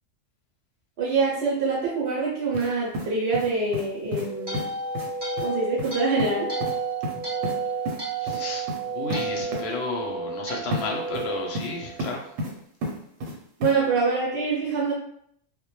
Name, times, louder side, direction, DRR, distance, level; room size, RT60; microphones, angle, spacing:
voice 1, 1.0-4.6 5.4-6.5 13.6-14.9, right 4 dB, 65° right, -4 dB, 0.9 m, -25 dB
sound 1, 2.5-2.7 2.9-3.9 4.1-4.3 4.5-4.7 4.9-5.1 5.4-5.5 5.8-5.9 6.2-6.3 6.6-6.7 7.0-7.6 7.9-8.0 8.3-8.4 8.7-8.8 9.1-9.2 9.5-9.6 10.7-10.8 11.1-11.7 12.0-12.5 12.8-13.3 13.6-13.7, left 1 dB, 85° right, 1.0 m, -31 dB
sound 2, 3.9-12.3, right 3 dB, 35° right, 0.4 m, -31 dB
voice 2, 8.2-12.2, left 3 dB, 65° left, 0 dB, 0.8 m, -33 dB
2.1 x 2.1 x 3.0 m, 0.67 s
omnidirectional pair, 1.3 m